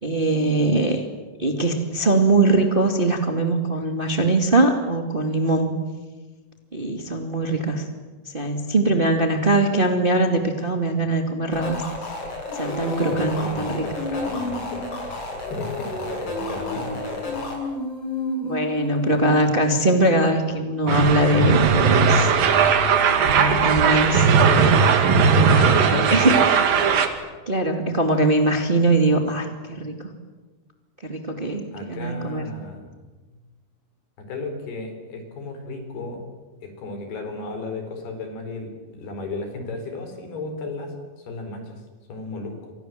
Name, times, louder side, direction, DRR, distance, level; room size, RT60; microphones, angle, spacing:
voice 1, 0.0-1.0 1.4-5.8 6.7-7.9 8.3-11.8 12.5-13.8 18.4-22.3 23.1-24.8 25.4-27.0 27.5-30.1 31.0-32.5, right 2 dB, 20° right, 5 dB, 1.8 m, -22 dB
sound 1, 11.5-17.5, left 2 dB, 35° left, 7.9 m, -32 dB
Female singing, 12.5-20.2, left 1 dB, 10° left, 5.7 m, -33 dB
voice 2, 13.0-17.4 25.7-26.0 31.7-32.9 33.3-33.4 34.2-36.2 36.6-40.9 41.3-41.8 42.1-42.7, left 3 dB, 85° left, 6 dB, 6.2 m, -34 dB
sound 2, 20.9-27.1, right 6 dB, 65° right, 3.6 m, -18 dB
29.5 x 25.0 x 7.6 m, 1.3 s
omnidirectional pair, 4.4 m